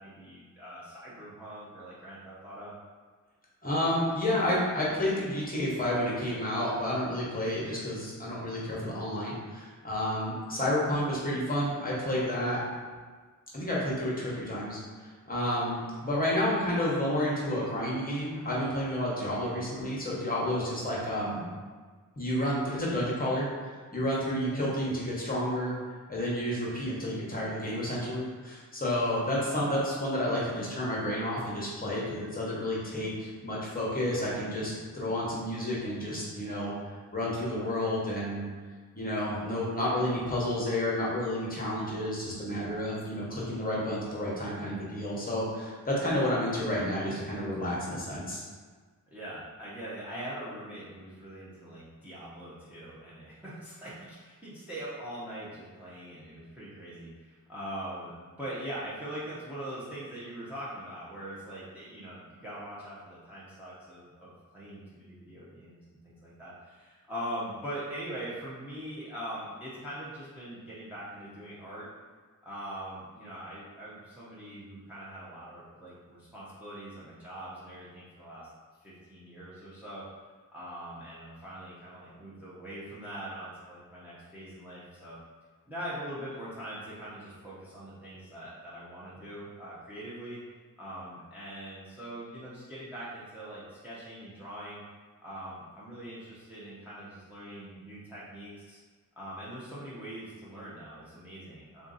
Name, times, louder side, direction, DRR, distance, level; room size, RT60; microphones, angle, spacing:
voice 1, 0.0-2.7 24.4-24.6 49.1-71.9 72.4-78.5 78.8-80.0 80.5-85.2 85.7-90.4 90.8-94.8 95.2-98.8 99.2-101.9, right 1 dB, 5° right, -9 dB, 0.7 m, -42 dB
voice 2, 3.6-12.6 13.5-14.8 15.3-21.4 22.2-23.5 23.9-25.7 26.1-36.7 37.1-38.4 38.9-48.4, left 1 dB, 25° left, -5 dB, 1.0 m, -30 dB
3.6 x 2.8 x 3.9 m, 1.5 s
wide cardioid pair, 165°, 34 cm